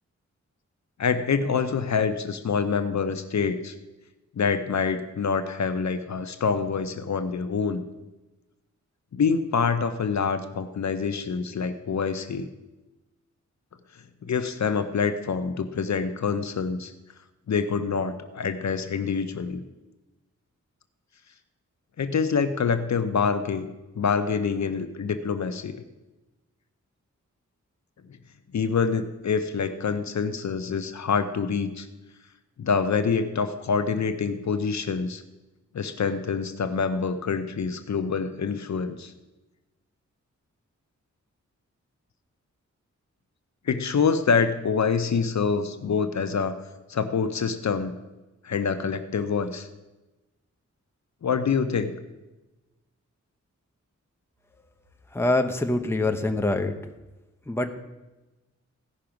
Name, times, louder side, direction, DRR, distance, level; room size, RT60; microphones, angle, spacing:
voice 1, 1.0-3.7 4.4-7.8 9.1-12.5 14.2-16.9 17.5-19.6 22.0-23.7 24.0-25.8 28.5-31.9 32.6-35.2 35.7-39.1 43.7-46.6 46.9-47.9 48.4-49.7 51.2-52.0, left 5 dB, 65° left, 9 dB, 0.7 m, -26 dB
voice 2, 55.1-56.8 57.5-57.7, left 2 dB, 10° left, 4 dB, 0.9 m, -24 dB
16.0 x 5.8 x 5.1 m, 1.1 s
wide cardioid pair, 90°, 30 cm